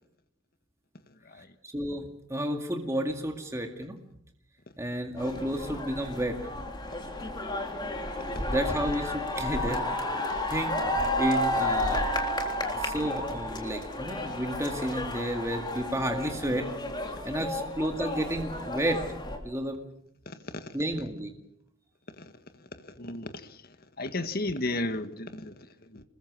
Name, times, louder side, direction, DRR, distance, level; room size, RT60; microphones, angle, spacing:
voice 1, 1.6-2.0 2.3-4.0 4.8-6.4 8.5-9.9 10.5-12.1 12.7-16.7 17.2-19.0 19.3-19.8 20.7-21.3, right 1 dB, 15° right, 2.1 m, -31 dB
sound 1, 5.2-19.4, left 1 dB, 20° left, 3.7 m, -32 dB
voice 2, 20.3-20.7 22.2-22.3 22.6-23.6 24.0-26.0, left 2 dB, 45° left, 1.8 m, -35 dB
27.5 x 21.5 x 6.3 m
head